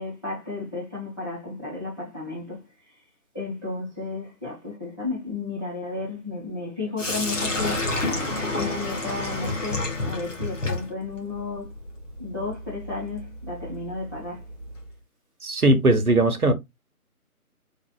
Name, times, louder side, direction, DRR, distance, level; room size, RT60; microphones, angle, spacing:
voice 1, 0.0-2.6 3.3-7.9 8.5-11.7 12.2-14.4, left 3 dB, 15° left, 1.0 m, -33 dB
Sink (filling or washing), 7.0-14.9, left 2 dB, 55° left, 1.9 m, -30 dB
voice 2, 15.4-16.5, right 2 dB, 70° right, 1.1 m, -19 dB
4.3 x 3.8 x 2.3 m
figure-of-eight pair, 160°, 45 cm